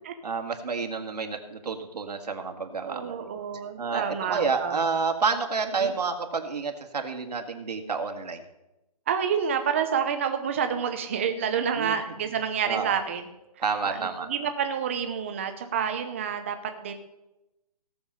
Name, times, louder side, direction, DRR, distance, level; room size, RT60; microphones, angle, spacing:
voice 1, 0.2-3.3 3.8-8.4 11.7-11.9 12.6-13.0 13.6-14.3, right 5 dB, 80° right, 5 dB, 2.0 m, -29 dB
voice 2, 2.8-4.8 5.8-5.9 9.1-13.3 13.8-16.9, right 7 dB, 20° right, 7 dB, 0.8 m, -29 dB
17.0 x 7.0 x 5.5 m, 0.95 s
hypercardioid pair, 175°, 21 cm